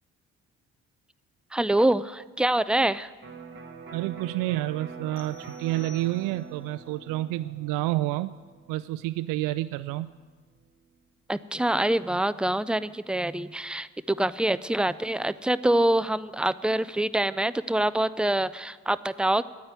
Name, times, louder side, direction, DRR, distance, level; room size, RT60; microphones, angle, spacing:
voice 1, 1.5-3.1 11.3-19.5, right 1 dB, 5° right, 15 dB, 0.3 m, -25 dB
Electric guitar, 3.2-10.9, right 5 dB, 30° right, 1.7 m, -45 dB
voice 2, 3.9-8.3 8.7-10.1, right 16 dB, 60° right, 12 dB, 0.5 m, -29 dB
sound 1, 5.2-6.7, left 6 dB, 60° left, 1.2 m, -53 dB
9.6 x 9.4 x 9.2 m, 1.4 s
hypercardioid pair, 50°, 37 cm